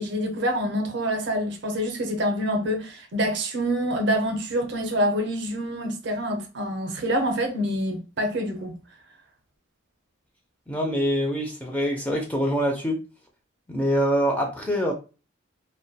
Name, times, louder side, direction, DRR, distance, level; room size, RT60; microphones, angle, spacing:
voice 1, 0.0-8.7, equal, 55° right, 0.5 m, -26 dB
voice 2, 10.7-13.0 13.7-14.9, equal, 5° left, 0.4 m, -24 dB
2.2 x 2.1 x 2.7 m
head